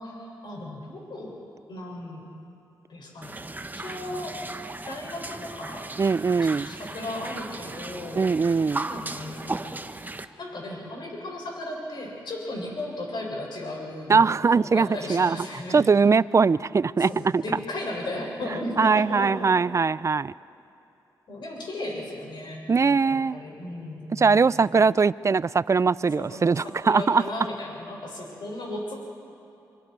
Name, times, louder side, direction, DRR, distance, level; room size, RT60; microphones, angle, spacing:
voice 1, 0.0-1.4 1.7-2.2 2.9-4.4 4.9-5.9 6.6-8.3 8.8-9.6 10.4-14.3 14.6-15.9 17.0-19.5 21.3-24.7 26.1-28.9, left 1 dB, 65° left, -2 dB, 6.8 m, -35 dB
sound 1, 3.2-10.2, right 2 dB, 20° right, 1.1 m, -36 dB
voice 2, 6.0-6.7 8.2-8.9 14.1-15.4 15.7-17.4 18.8-20.3 22.7-23.4 24.1-27.2, right 5 dB, 40° right, 19 dB, 0.4 m, -21 dB
25.0 x 24.5 x 4.7 m, 2.8 s
cardioid pair, 55°, 8 cm